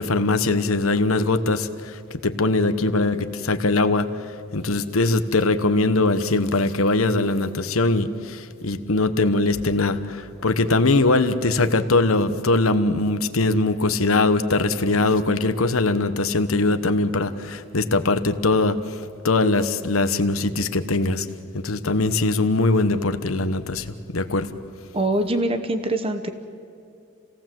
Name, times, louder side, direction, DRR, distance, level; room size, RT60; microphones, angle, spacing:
voice 1, 0.0-18.8 19.2-21.3 21.5-23.9 24.1-24.5, left 2 dB, 85° left, 10 dB, 1.2 m, -21 dB
voice 2, 24.9-26.3, right 1 dB, 30° right, 8 dB, 0.9 m, -23 dB
28.5 x 18.0 x 7.7 m, 2.5 s
head